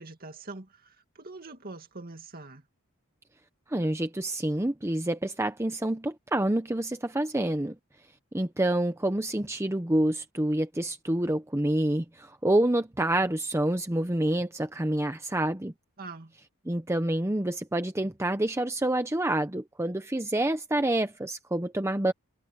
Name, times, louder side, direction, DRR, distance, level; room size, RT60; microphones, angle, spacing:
voice 1, 0.0-2.6 16.0-16.3, right 3 dB, 40° right, 2.3 m, -43 dB
voice 2, 3.7-7.7 8.3-15.7 16.6-22.1, right 1 dB, 10° right, 0.8 m, -27 dB
head